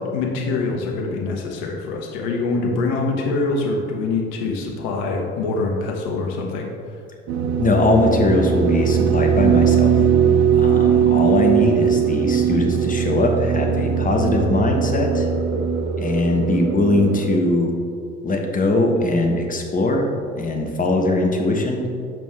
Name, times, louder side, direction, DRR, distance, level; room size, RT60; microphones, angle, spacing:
voice 1, 0.0-6.7, left 3 dB, 60° left, 1 dB, 1.1 m, -24 dB
sound 1, 7.3-17.4, right 7 dB, 50° right, 0.7 m, -19 dB
voice 2, 7.6-10.0 10.5-15.3 16.0-17.7 18.2-20.1 20.3-21.9, left 2 dB, 25° left, 2 dB, 1.0 m, -21 dB
7.3 x 5.3 x 3.3 m, 2.3 s
figure-of-eight pair, 60°, 35 cm